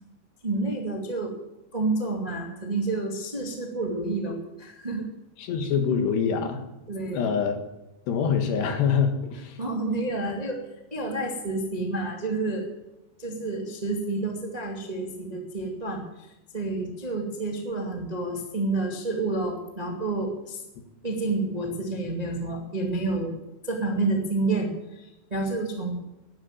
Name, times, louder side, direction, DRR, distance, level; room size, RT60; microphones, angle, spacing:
voice 1, 0.4-1.3 1.7-5.1 6.9-7.2 9.6-12.6 13.2-20.6 21.0-23.4 23.6-25.9, right 2 dB, 20° right, 1 dB, 1.0 m, -29 dB
voice 2, 5.4-6.6 7.1-7.6 8.1-9.6, left 6 dB, 75° left, 6 dB, 3.8 m, -25 dB
12.0 x 11.0 x 9.1 m, 0.95 s
omnidirectional pair, 4.9 m